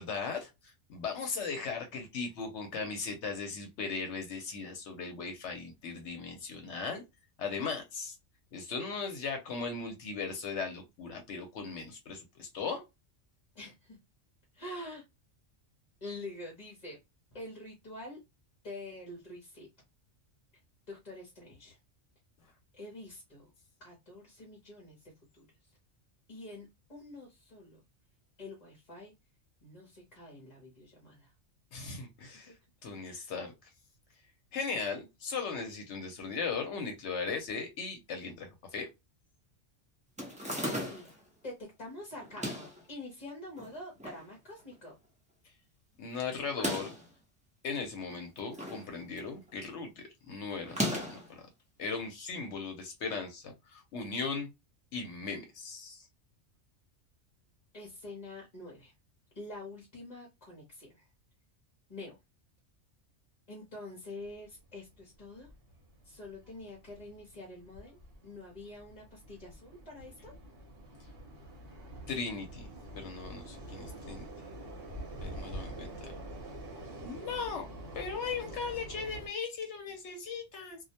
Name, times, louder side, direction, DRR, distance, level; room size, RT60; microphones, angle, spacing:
voice 1, 0.0-7.0 7.4-8.2 8.5-12.8 31.7-32.5 32.8-33.5 34.5-38.9 46.0-46.9 47.6-51.2 51.8-54.5 54.9-56.1 72.1-72.7 72.9-74.3 75.2-76.1 77.0-77.6 77.9-80.8, left 5 dB, 75° left, 4 dB, 0.9 m, -38 dB
voice 2, 13.5-14.0 14.5-15.0 16.0-17.0 17.3-18.2 18.6-19.7 20.9-21.8 22.7-23.5 23.8-25.4 26.3-27.8 28.4-29.1 29.6-31.3 33.0-33.3 40.9-41.2 41.4-44.9 57.7-58.9 59.3-61.0 61.9-62.2 63.5-65.5 66.0-70.3, left 2 dB, 40° left, -1 dB, 0.8 m, -46 dB
sound 1, 40.2-41.2 42.2-42.8 43.6-44.2 44.6-44.7 44.9-45.0 46.4-47.1 48.1-48.9 49.2-49.5 50.6-51.3, equal, 10° right, 0.5 m, -36 dB
sound 2, 64.2-79.3, right 1 dB, 60° right, 1.0 m, -46 dB
2.3 x 2.0 x 2.7 m, 0.22 s
omnidirectional pair, 1.2 m